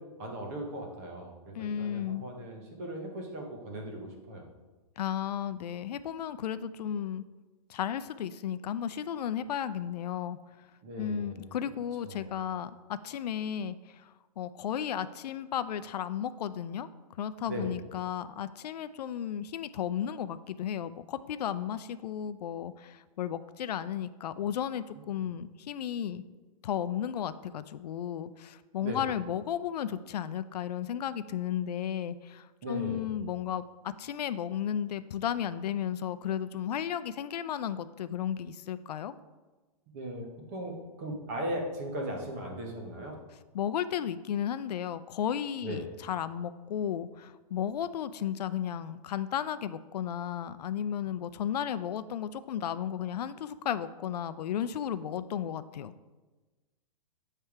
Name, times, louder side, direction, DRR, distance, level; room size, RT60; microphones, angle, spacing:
voice 1, 0.0-4.4 10.8-11.5 12.0-12.4 17.5-17.7 25.2-25.3 28.8-29.0 32.6-33.1 39.9-43.2 45.6-45.9, right 1 dB, 25° right, 1 dB, 0.8 m, -38 dB
voice 2, 1.5-2.3 5.0-7.2 7.7-10.4 11.0-16.9 17.2-26.2 26.6-39.1 43.5-55.9, left 9 dB, 80° left, 13 dB, 0.4 m, -34 dB
8.7 x 3.3 x 4.6 m, 1.2 s
hypercardioid pair, 180°, 20 cm